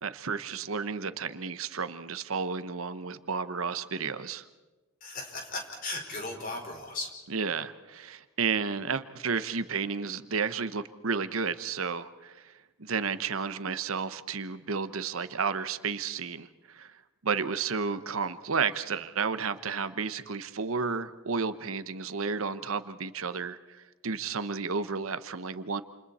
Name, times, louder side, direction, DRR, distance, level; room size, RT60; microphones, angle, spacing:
voice 1, 0.0-4.4 7.3-12.5 12.8-25.8, right 5 dB, 75° right, 12 dB, 1.0 m, -32 dB
voice 2, 5.0-7.1, left 2 dB, 40° left, 1 dB, 4.9 m, -36 dB
28.5 x 28.5 x 4.3 m, 1.1 s
head